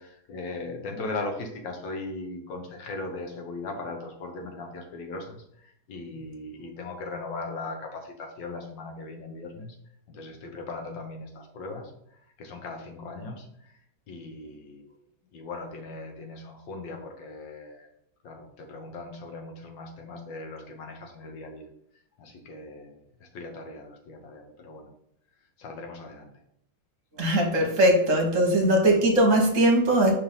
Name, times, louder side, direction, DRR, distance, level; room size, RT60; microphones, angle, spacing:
voice 1, 0.0-9.8 10.1-11.9 12.4-13.8 14.1-14.9 15.3-17.9 18.2-21.7 22.2-24.9 25.6-26.3, left 3 dB, 90° left, 3 dB, 1.8 m, -38 dB
voice 2, 27.2-30.1, right 1 dB, 50° right, 1 dB, 1.3 m, -20 dB
5.5 x 3.4 x 5.5 m, 0.73 s
omnidirectional pair, 1.9 m